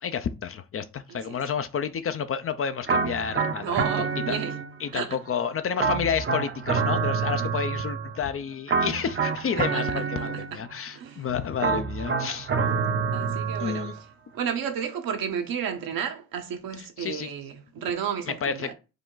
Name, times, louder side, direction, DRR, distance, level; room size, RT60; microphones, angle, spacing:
voice 1, 0.0-4.4 4.8-12.5 13.6-13.9 16.8-17.3 18.3-18.7, left 7 dB, 35° left, 0.5 m, -30 dB
sound 1, 2.9-5.0 5.8-8.2 8.7-10.8 11.6-14.0, right 5 dB, 35° right, 0.7 m, -27 dB
voice 2, 3.6-4.5 4.9-5.2 9.5-9.8 10.3-10.4 10.9-11.3 13.1-13.9 14.3-18.7, right 8 dB, 65° right, 1.0 m, -32 dB
4.9 x 2.2 x 3.8 m
supercardioid pair, 60°, 37 cm